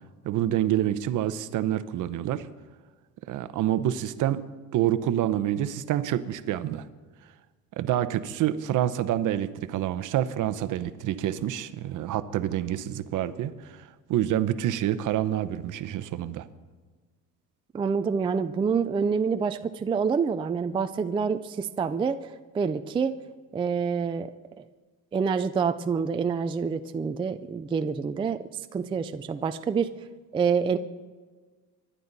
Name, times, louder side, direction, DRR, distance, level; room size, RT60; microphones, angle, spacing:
voice 1, 0.2-2.5 3.3-4.4 4.7-6.9 7.8-16.5, right 12 dB, 60° right, 12 dB, 0.9 m, -27 dB
voice 2, 17.7-23.2 23.5-24.3 24.6-24.7 25.1-29.9 30.3-30.8, right 6 dB, 15° right, 9 dB, 0.3 m, -27 dB
25.0 x 11.5 x 4.1 m, 1.4 s
cardioid pair, 155°, 35 cm